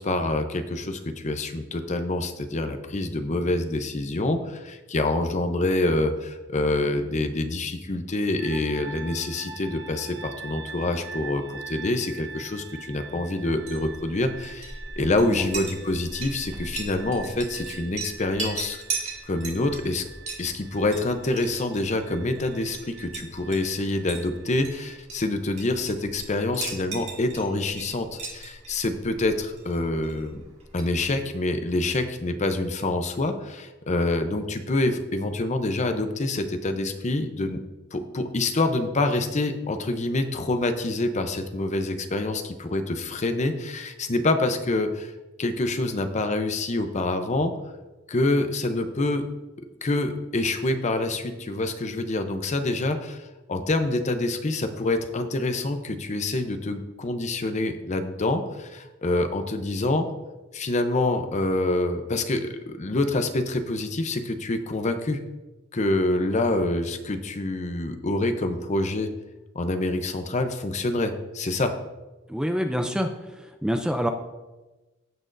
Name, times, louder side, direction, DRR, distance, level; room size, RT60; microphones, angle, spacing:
voice 1, 0.0-18.8 19.3-20.1 20.4-30.4 30.7-37.6 37.9-45.1 45.4-47.5 48.1-49.3 49.8-60.1 60.5-65.2 65.7-69.1 69.5-71.7, left 2 dB, 35° left, 8 dB, 0.7 m, -26 dB
sound 1, 8.4-25.0, right 5 dB, 90° right, 0.7 m, -44 dB
Chink clink, 13.5-31.3, right 3 dB, 35° right, 2.5 m, -39 dB
voice 2, 72.3-74.1, equal, 5° right, 5 dB, 0.4 m, -27 dB
15.5 x 6.2 x 2.6 m, 1.1 s
head